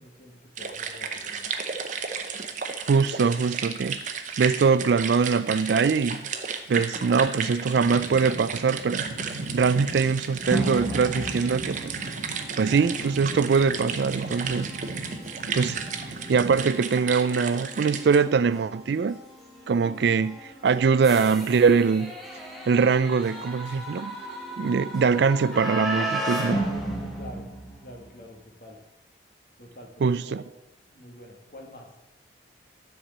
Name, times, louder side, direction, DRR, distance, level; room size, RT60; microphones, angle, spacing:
voice 1, 0.0-1.5 27.2-27.5 27.8-28.8 29.6-30.5 30.9-32.1, left 1 dB, 50° left, 1.9 m, -47 dB
sound 1, 0.6-18.2, right 6 dB, 40° right, 0.8 m, -34 dB
voice 2, 2.9-6.3 6.7-9.1 9.5-11.9 12.6-14.7 15.5-15.8 16.3-19.2 19.7-22.1 22.7-24.1 24.6-26.7 30.0-30.4, right 5 dB, 60° right, 0.3 m, -22 dB
sound 2, 7.7-16.6, right 2 dB, 85° right, 1.0 m, -38 dB
sound 3, 10.5-28.2, right 1 dB, ahead, 1.3 m, -35 dB
10.0 x 4.7 x 7.3 m
head